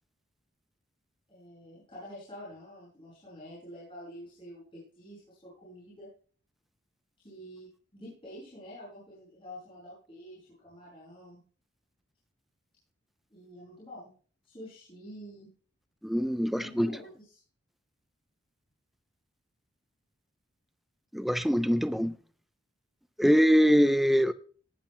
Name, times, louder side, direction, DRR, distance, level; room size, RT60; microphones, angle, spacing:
voice 1, 1.3-6.1 7.2-11.4 13.3-14.1 14.4-15.5 16.4-17.4, equal, 25° left, 6.9 m, -48 dB
voice 2, 16.0-17.0 21.1-22.1 23.2-24.3, equal, ahead, 0.4 m, -23 dB
18.0 x 12.0 x 2.2 m
head